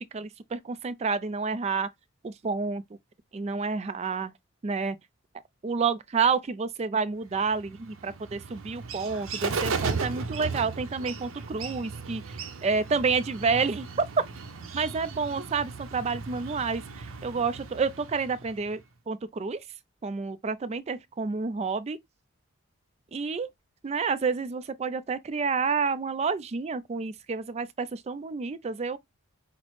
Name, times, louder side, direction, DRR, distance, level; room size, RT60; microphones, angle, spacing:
voice 1, 0.1-1.9 2.2-2.8 3.3-4.3 4.6-5.0 5.6-12.2 12.6-13.9 14.7-18.8 19.1-19.6 20.0-22.0 23.1-23.5 23.8-29.0, right 5 dB, 30° right, 0.3 m, -29 dB
Bird, 7.3-18.8, right 4 dB, 70° right, 0.6 m, -36 dB
5.7 x 2.0 x 3.1 m
head